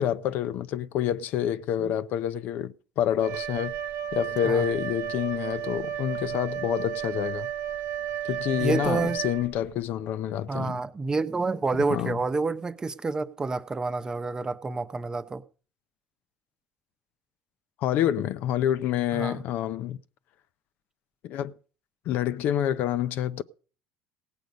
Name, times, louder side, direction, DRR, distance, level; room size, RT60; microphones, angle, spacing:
voice 1, 0.0-3.7 4.1-7.5 8.2-10.8 11.9-12.2 17.8-20.0 21.2-21.5 22.1-23.4, left 10 dB, 65° left, 0.6 m, -28 dB
Wind instrument woodwind instrument, 3.2-9.8, right 10 dB, 75° right, 1.0 m, -33 dB
voice 2, 8.6-9.2 10.5-15.5 19.1-19.4, right 3 dB, 20° right, 0.8 m, -28 dB
17.0 x 8.0 x 5.3 m
supercardioid pair, 100°, 3 cm